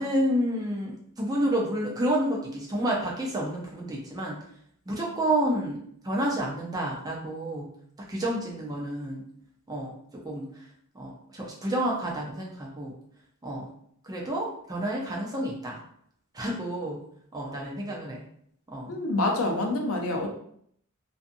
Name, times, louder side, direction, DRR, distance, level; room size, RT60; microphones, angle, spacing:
voice 1, 0.0-4.4 4.9-7.7 8.1-9.2 9.7-10.0 10.2-10.7 10.9-12.9 13.4-13.7 14.0-15.8 16.3-17.0 17.3-18.2 18.7-19.0, right 1 dB, 15° right, -3 dB, 0.5 m, -29 dB
voice 2, 18.9-20.3, left 2 dB, 70° left, 2 dB, 0.5 m, -26 dB
2.6 x 2.4 x 2.5 m, 0.66 s
head